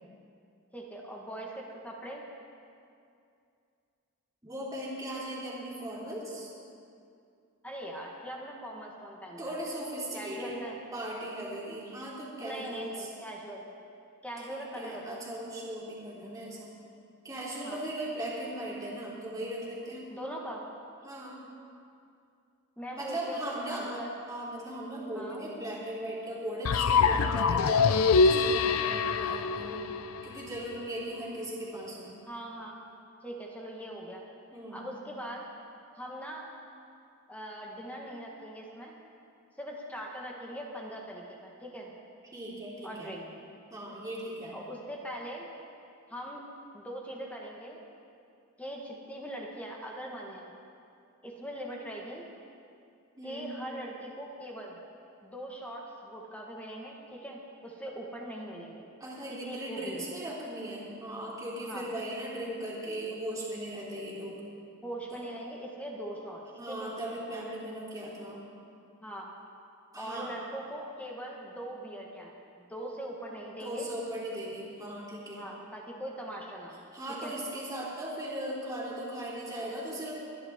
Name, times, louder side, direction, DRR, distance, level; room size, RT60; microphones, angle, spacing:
voice 1, 0.7-2.3 7.6-9.6 10.1-10.8 12.4-13.6 14.2-15.2 17.6-17.8 20.1-20.6 22.8-24.2 25.1-25.4 32.3-32.8 33.2-34.2 34.7-35.5 35.9-36.5 37.3-39.0 39.6-41.9 42.8-43.2 44.5-45.5 46.1-46.4 46.7-47.8 48.6-50.5 51.2-52.2 53.2-54.8 55.2-58.9 59.3-60.1 61.7-61.9 64.8-66.9 69.0-69.3 70.0-73.9 75.4-76.8 77.1-77.3, right 1 dB, 5° left, -2 dB, 1.3 m, -41 dB
voice 2, 4.4-6.5 9.4-10.6 10.9-13.1 14.4-16.7 17.2-20.1 21.0-21.4 22.9-23.9 24.3-29.9 30.2-32.2 34.5-34.8 42.3-43.2 43.7-44.6 53.2-53.5 59.0-64.4 65.1-65.2 66.5-68.4 69.9-70.3 73.6-75.5 76.9-80.2, right 1 dB, 15° right, -6 dB, 3.0 m, -38 dB
sound 1, 26.6-30.6, left 5 dB, 65° left, 0.5 m, -25 dB
24.0 x 10.5 x 3.6 m, 2.5 s
head